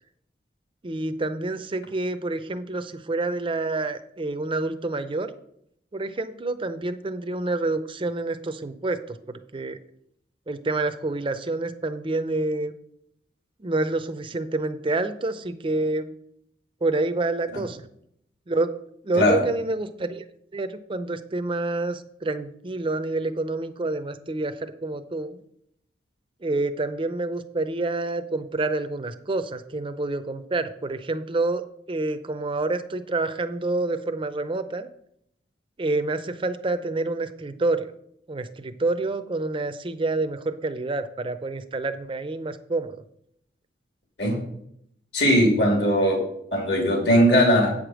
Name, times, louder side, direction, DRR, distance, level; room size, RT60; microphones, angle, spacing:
voice 1, 0.8-5.3 5.9-9.8 10.5-12.7 13.6-16.1 16.8-17.8 18.5-18.7 19.0-20.2 20.5-25.4 26.4-31.6 31.9-34.9 35.8-37.9 38.3-42.9, right 2 dB, 30° right, 10 dB, 0.5 m, -28 dB
voice 2, 45.1-46.2 46.5-47.7, equal, 70° left, 0 dB, 2.7 m, -19 dB
8.3 x 5.1 x 6.1 m, 0.73 s
head